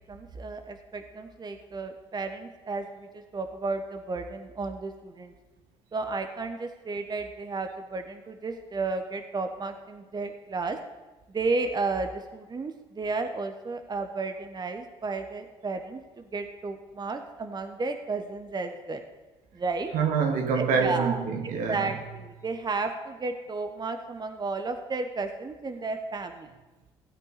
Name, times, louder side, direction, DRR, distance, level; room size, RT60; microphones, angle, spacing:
voice 1, 0.0-5.3 5.9-10.8 11.3-19.0 19.5-19.9 20.5-21.2 21.7-26.5, right 3 dB, 30° right, 1.1 m, -33 dB
voice 2, 19.9-22.0, right 5 dB, 65° right, 1.5 m, -26 dB
16.0 x 8.1 x 4.2 m
hypercardioid pair, 55°, 15 cm